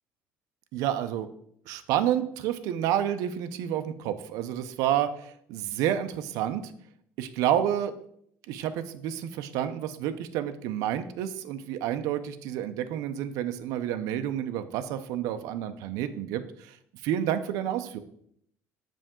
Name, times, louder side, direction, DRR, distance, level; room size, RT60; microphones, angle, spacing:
voice 1, 0.7-1.3 1.7-6.6 7.2-7.9 8.5-16.8 17.0-18.0, right 10 dB, 75° right, 10 dB, 0.6 m, -29 dB
7.7 x 5.1 x 3.7 m, 0.69 s
cardioid pair, 160°, 6 cm